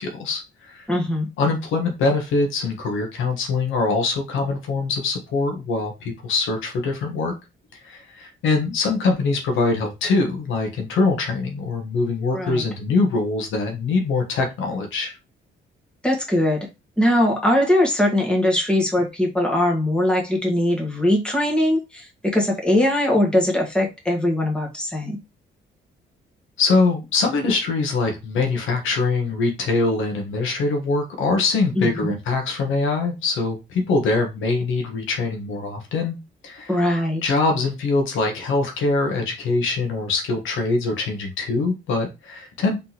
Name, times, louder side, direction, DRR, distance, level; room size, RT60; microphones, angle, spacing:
voice 1, 0.0-0.9 1.4-7.3 7.8-15.1 26.6-36.2 36.4-36.7 37.2-42.8, left 3 dB, 80° left, 3 dB, 1.2 m, -23 dB
voice 2, 0.9-1.3 12.3-12.6 16.0-16.7 17.0-25.2 31.7-32.1 36.7-37.2, left 1 dB, 5° left, -1 dB, 1.6 m, -21 dB
4.0 x 3.7 x 2.9 m, 0.25 s
cardioid pair, 90°, 20 cm